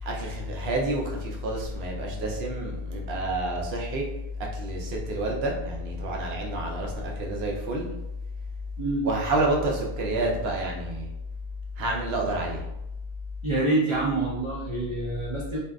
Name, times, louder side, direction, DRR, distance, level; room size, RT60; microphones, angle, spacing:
voice 1, 0.0-4.0 4.4-7.9 9.0-11.1 11.8-12.6, right 1 dB, 75° right, 0 dB, 0.8 m, -28 dB
voice 2, 8.8-9.1 13.4-15.6, right 2 dB, 50° right, -5 dB, 0.3 m, -26 dB
2.6 x 2.3 x 2.2 m, 0.89 s
omnidirectional pair, 1.0 m